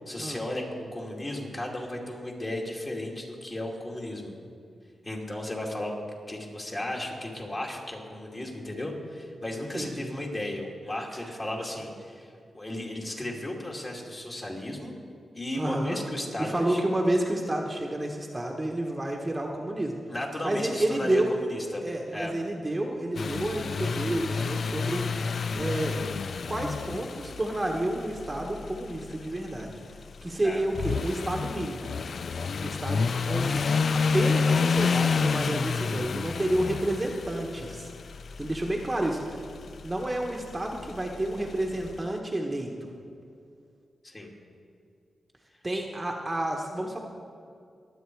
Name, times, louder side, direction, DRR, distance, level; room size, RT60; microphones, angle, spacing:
voice 1, 0.1-4.4 5.0-6.0 6.3-14.9 15.3-16.8 20.1-21.8 22.1-22.3 30.4-30.6 44.0-44.3, left 1 dB, 30° left, -1 dB, 2.6 m, -35 dB
voice 2, 9.7-10.1 11.1-11.4 15.6-16.0 16.4-20.0 20.4-21.3 21.8-25.0 25.5-26.0 26.5-29.8 30.2-31.9 32.6-33.6 34.1-37.9 38.4-39.4 39.8-42.9 45.6-47.0, right 1 dB, 20° right, 1 dB, 1.2 m, -30 dB
sound 1, 23.2-42.0, left 5 dB, 60° left, 0.3 m, -30 dB
21.5 x 8.1 x 4.7 m, 2.4 s
cardioid pair, 85°, 0 cm